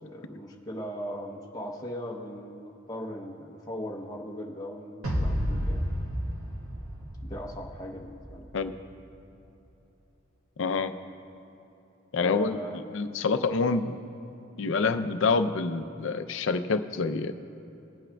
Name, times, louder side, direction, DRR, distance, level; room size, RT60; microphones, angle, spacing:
voice 1, 0.0-5.9 7.2-8.5 12.1-12.8, equal, 15° left, -3 dB, 0.7 m, -39 dB
sound 1, 5.0-8.3, equal, 85° right, 1.8 m, -31 dB
voice 2, 10.6-10.9 12.1-12.6 12.9-13.9 14.6-17.3, left 4 dB, 65° left, 10 dB, 0.5 m, -27 dB
22.5 x 8.4 x 2.2 m, 2.9 s
head